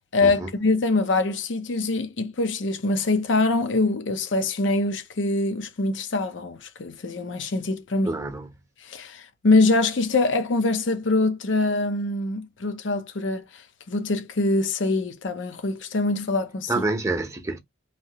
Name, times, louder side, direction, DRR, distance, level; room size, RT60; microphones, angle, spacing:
voice 1, 0.1-8.1 8.9-13.4 13.9-16.7, left 2 dB, 70° left, 0.6 m, -24 dB
voice 2, 8.1-8.6 16.7-17.6, right 2 dB, 15° right, 0.7 m, -27 dB
3.0 x 2.8 x 2.8 m
head